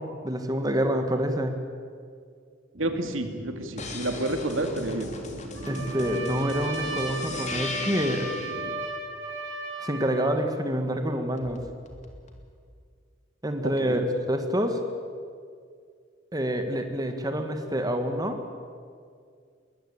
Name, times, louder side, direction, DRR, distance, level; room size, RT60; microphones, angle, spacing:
voice 1, 0.0-1.6 5.7-8.3 9.8-11.6 13.4-14.8 16.3-18.4, equal, 20° right, 6 dB, 1.8 m, -27 dB
sound 1, 2.7-8.7, equal, 55° right, 3.0 m, -41 dB
voice 2, 2.8-5.1 13.6-14.0, right 1 dB, 90° right, 6 dB, 2.6 m, -30 dB
sound 2, 3.8-8.6 11.4-12.5, left 3 dB, 35° left, 3.0 m, -39 dB
Trumpet, 5.5-10.4, right 2 dB, 70° right, 4.4 m, -35 dB
22.5 x 20.0 x 8.8 m, 2.2 s
head